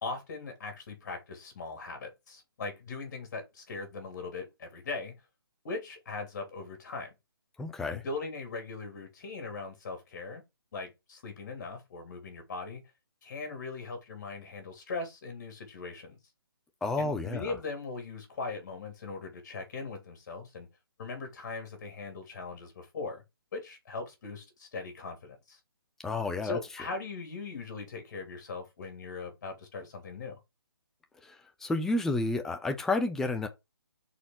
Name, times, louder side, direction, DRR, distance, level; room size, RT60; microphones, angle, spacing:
voice 1, 0.0-5.1 5.6-7.1 7.9-10.4 10.7-12.8 13.2-16.2 17.0-20.7 21.0-23.2 23.5-25.6 26.4-30.4, left 4 dB, 45° left, 3.1 m, -40 dB
voice 2, 7.6-8.0 16.8-17.5 26.0-26.6 31.6-33.5, left 2 dB, 5° left, 0.5 m, -30 dB
5.1 x 4.4 x 4.5 m
hypercardioid pair, 155°, 13 cm